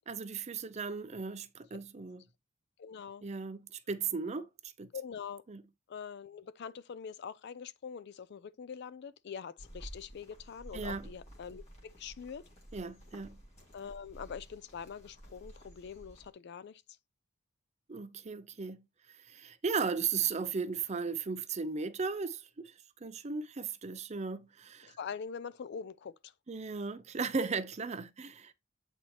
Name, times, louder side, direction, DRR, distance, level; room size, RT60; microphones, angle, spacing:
voice 1, 0.1-2.2 3.2-4.9 5.5-5.6 10.7-11.1 12.7-13.4 17.9-18.8 19.3-22.7 23.0-24.9 26.5-28.5, right 5 dB, 35° right, 0.5 m, -36 dB
voice 2, 2.8-3.2 4.9-5.4 5.9-12.4 13.7-16.8 24.8-26.3, left 6 dB, 55° left, 0.4 m, -44 dB
sound 1, 9.6-16.3, equal, 30° left, 1.9 m, -51 dB
7.9 x 4.3 x 2.8 m
head